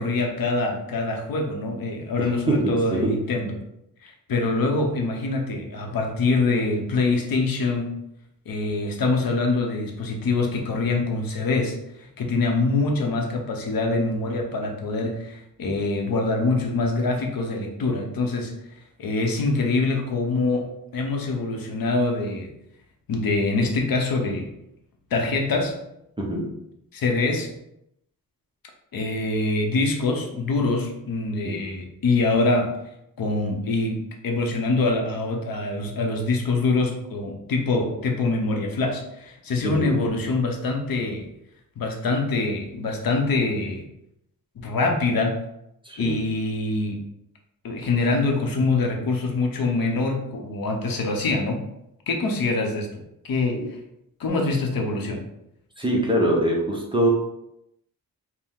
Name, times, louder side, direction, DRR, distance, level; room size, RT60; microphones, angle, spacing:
voice 1, 0.0-3.6 4.0-7.9 8.5-11.8 12.2-18.5 19.0-22.5 23.1-24.5 25.1-25.8 26.9-27.5 28.9-32.8 33.2-34.0 34.2-41.3 41.8-43.8 44.6-45.4 46.0-47.0 47.6-51.6 52.1-53.6 54.2-55.2, left 3 dB, 75° left, 2 dB, 0.8 m, -24 dB
voice 2, 2.2-2.8 3.0-3.1 26.2-26.5 31.4-31.6 39.6-39.9 45.8-46.2 53.5-53.6 55.8-57.1, right 1 dB, 15° right, -3 dB, 0.6 m, -23 dB
4.4 x 2.1 x 3.6 m, 0.80 s
wide cardioid pair, 160°, 36 cm